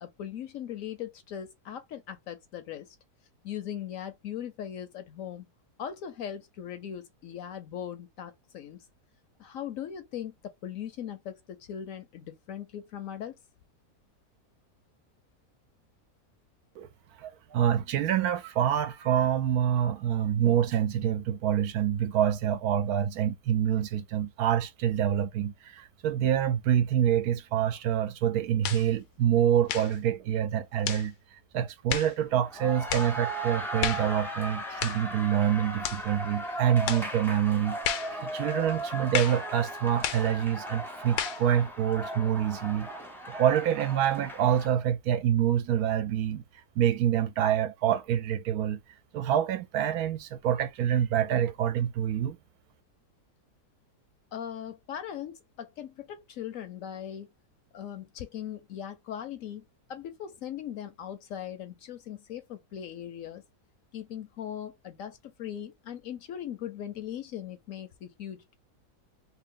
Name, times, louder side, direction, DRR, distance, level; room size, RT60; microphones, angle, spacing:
voice 1, 0.0-3.0 3.4-5.5 5.8-8.8 9.4-13.3 54.3-57.3 57.7-59.6 59.9-63.4 63.9-68.6, left 9 dB, 65° left, 0.9 m, -39 dB
voice 2, 17.2-31.1 31.5-37.8 38.1-42.9 43.3-46.4 46.8-48.8 49.1-52.4, right 10 dB, 75° right, 1.0 m, -26 dB
sound 1, 28.6-28.9 29.7-30.0 30.8-31.1 31.9-32.1 32.9-33.1 33.8-34.1 34.8-35.1 35.8-36.1 36.9-37.1 37.8-38.1 39.1-39.4 40.0-40.3 41.2-41.4, left 10 dB, 85° left, 1.2 m, -32 dB
sound 2, 32.3-44.7, right 1 dB, 5° left, 0.4 m, -37 dB
3.0 x 2.8 x 3.7 m
omnidirectional pair, 1.7 m